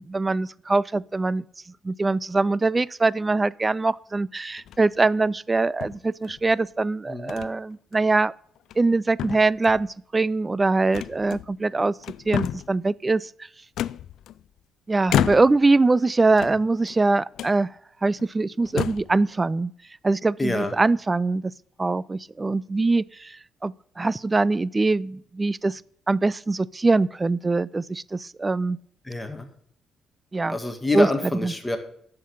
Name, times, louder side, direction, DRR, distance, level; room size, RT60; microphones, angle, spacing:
voice 1, 0.0-1.4 1.8-8.3 8.8-12.0 12.3-13.3 14.9-17.7 18.0-19.7 20.0-21.4 21.8-23.4 23.6-25.8 26.1-28.8 30.3-30.6 30.9-31.1 31.4-31.5, right 3 dB, 20° right, 0.3 m, -23 dB
sound 1, 4.6-5.0 5.8-6.5 7.3-7.5 7.9-8.1 8.6-8.9 9.2-9.9 10.9-11.7 12.0-12.8 13.8-14.6 15.1-15.7 16.3-17.0 17.3-17.6 18.2-18.3 18.6-19.2, left 11 dB, 75° left, 0.3 m, -30 dB
voice 2, 20.4-20.7 29.0-29.5 30.5-31.8, left 2 dB, 10° left, 1.9 m, -26 dB
11.0 x 6.7 x 5.6 m
cardioid pair, 90°, 0 cm